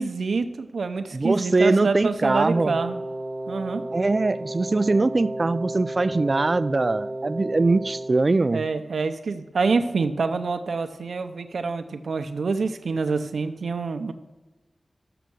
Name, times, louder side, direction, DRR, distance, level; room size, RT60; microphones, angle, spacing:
voice 1, 0.0-3.0 3.5-3.8 8.5-14.1, right 4 dB, 90° right, 8 dB, 0.6 m, -26 dB
voice 2, 1.1-2.8 3.9-8.6, right 3 dB, 40° right, 14 dB, 0.3 m, -22 dB
Wind instrument woodwind instrument, 2.5-8.2, right 1 dB, 10° right, 1.2 m, -33 dB
6.8 x 6.3 x 6.1 m, 1.1 s
wide cardioid pair, 100°, 0 cm